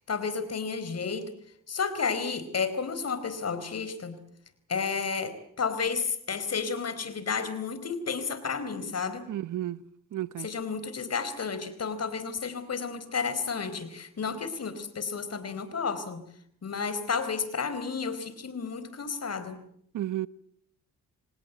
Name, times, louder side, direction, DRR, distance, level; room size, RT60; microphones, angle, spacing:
voice 1, 0.1-1.3 1.7-4.2 4.7-9.3 10.4-16.2 16.6-19.6, left 5 dB, 50° left, 4.4 m, -32 dB
voice 2, 9.3-9.8 10.1-10.5 19.9-20.3, right 13 dB, 70° right, 1.0 m, -32 dB
26.5 x 19.0 x 9.3 m
supercardioid pair, 65°, 32 cm